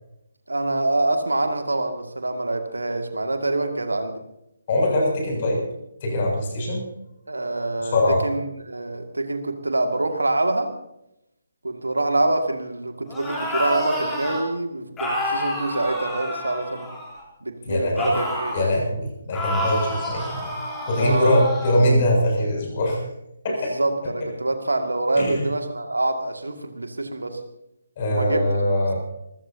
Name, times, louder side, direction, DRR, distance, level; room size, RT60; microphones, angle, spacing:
voice 1, 0.5-4.2 7.3-8.0 8.2-10.7 11.6-16.9 17.4-18.8 21.0-21.5 23.5-27.4 28.1-28.4, right 2 dB, 75° right, 5 dB, 2.2 m, -25 dB
voice 2, 4.7-5.6 6.0-6.8 7.8-8.2 17.7-18.1 18.5-20.5 20.9-23.0 23.4-23.7 25.2-25.5 28.0-29.0, left 1 dB, 35° left, 0 dB, 7.2 m, -22 dB
sound 1, 13.1-14.4 15.0-17.2 17.9-18.7 19.3-21.8, left 1 dB, 10° left, 3.8 m, -28 dB
26.5 x 15.0 x 2.8 m, 0.84 s
figure-of-eight pair, 145°, 0 cm